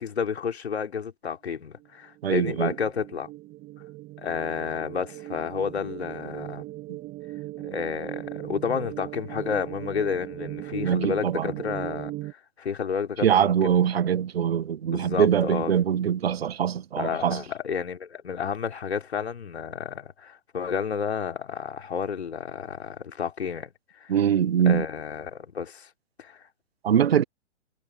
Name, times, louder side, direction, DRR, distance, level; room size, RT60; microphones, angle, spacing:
voice 1, 0.0-3.3 4.2-6.7 7.6-13.9 14.9-15.7 17.0-23.7 24.0-24.1 24.7-25.9 26.2-26.4, left 6 dB, 60° left, 3.9 m, -31 dB
sound 1, 1.8-12.3, right 18 dB, 20° right, 3.0 m, -39 dB
voice 2, 2.2-2.7 6.9-7.0 10.8-11.5 13.2-17.4 24.1-24.8 26.8-27.2, right 9 dB, 55° right, 1.5 m, -23 dB
figure-of-eight pair, 120°, 36 cm